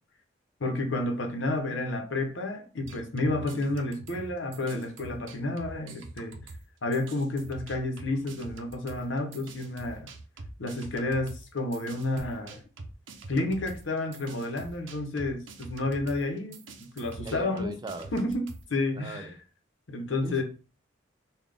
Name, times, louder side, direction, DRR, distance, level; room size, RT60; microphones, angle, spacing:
voice 1, 0.6-6.4 6.8-10.1 10.6-12.6 13.3-16.6 16.9-17.8 18.1-19.3 19.9-20.4, left 2 dB, 75° left, 0.9 m, -30 dB
sound 1, 2.8-6.7 6.9-18.7, right 2 dB, 80° right, 0.6 m, -45 dB
voice 2, 17.2-18.1 18.9-19.4 20.2-20.4, right 2 dB, 20° right, 0.3 m, -39 dB
3.9 x 2.3 x 3.4 m
head